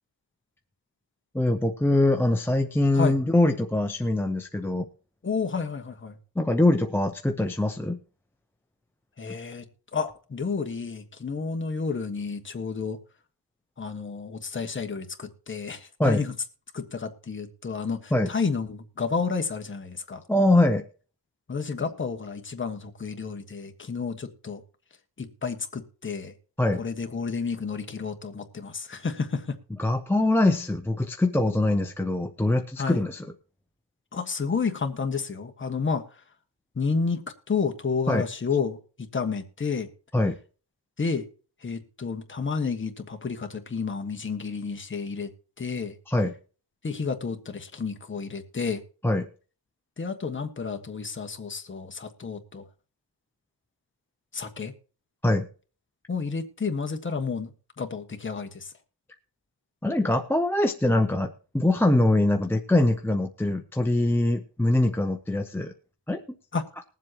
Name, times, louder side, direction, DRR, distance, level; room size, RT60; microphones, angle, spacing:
voice 1, 1.3-4.9 6.4-8.0 16.0-16.2 18.1-18.3 20.3-20.8 26.6-26.8 29.8-33.3 38.1-38.3 40.1-40.4 46.1-46.3 49.0-49.3 55.2-55.5 59.8-65.7 66.1-66.2, left 1 dB, 5° left, 4 dB, 0.6 m, -23 dB
voice 2, 5.2-6.2 9.2-9.6 9.9-13.0 13.8-16.3 16.7-20.2 21.5-24.6 25.2-26.3 26.8-29.6 32.8-33.0 34.1-36.2 36.7-39.9 41.0-41.3 41.6-45.3 45.6-45.9 46.8-48.8 50.0-52.6 54.3-54.7 56.1-57.5 57.8-58.7 66.5-66.6, left 5 dB, 25° left, 4 dB, 1.4 m, -31 dB
21.0 x 7.5 x 3.0 m, 0.38 s
cardioid pair, 120°, 44 cm